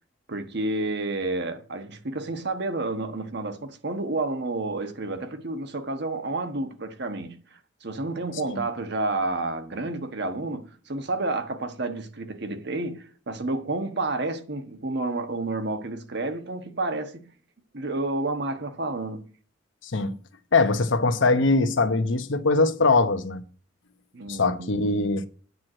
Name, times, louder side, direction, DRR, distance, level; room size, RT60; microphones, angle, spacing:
voice 1, 0.3-17.3 17.7-19.2 24.1-24.7, right 2 dB, 60° right, 1.3 m, -30 dB
voice 2, 19.8-20.1 20.5-23.4 24.3-25.2, left 3 dB, 75° left, 1.0 m, -22 dB
9.3 x 4.7 x 7.6 m
head